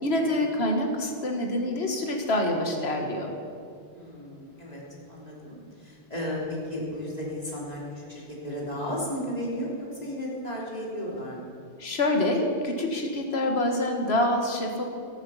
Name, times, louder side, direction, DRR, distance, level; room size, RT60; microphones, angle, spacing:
voice 1, 0.0-3.3 11.8-14.9, left 1 dB, 70° left, 2 dB, 1.9 m, -26 dB
voice 2, 3.9-4.8 5.1-11.5, equal, 35° left, -4 dB, 3.6 m, -34 dB
14.5 x 13.5 x 5.7 m, 2.3 s
omnidirectional pair, 1.1 m